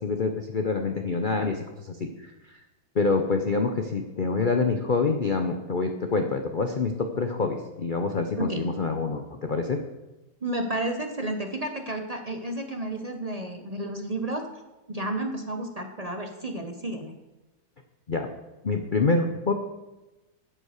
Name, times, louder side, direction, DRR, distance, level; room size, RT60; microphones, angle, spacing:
voice 1, 0.0-2.6 2.9-9.8 18.1-18.3 18.6-19.5, left 4 dB, 75° left, 5 dB, 0.4 m, -26 dB
voice 2, 10.4-14.5 14.9-17.1, right 1 dB, 40° right, 4 dB, 0.5 m, -31 dB
10.0 x 8.0 x 6.5 m, 1.1 s
omnidirectional pair, 2.0 m